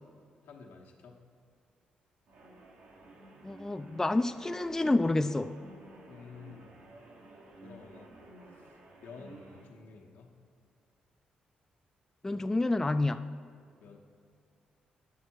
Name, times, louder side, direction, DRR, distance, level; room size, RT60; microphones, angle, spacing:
voice 1, 0.4-1.2 6.1-6.7 7.6-8.2 8.5-8.7 9.0-10.3 12.3-12.6 13.8-14.0, left 5 dB, 80° left, 0 dB, 1.1 m, -51 dB
sound 1, 2.3-9.7, right 2 dB, 75° right, 1.4 m, -53 dB
voice 2, 3.4-5.5 12.2-13.2, left 2 dB, 15° left, 10 dB, 0.3 m, -28 dB
9.4 x 6.2 x 4.5 m, 2.4 s
supercardioid pair, 60°, 3 cm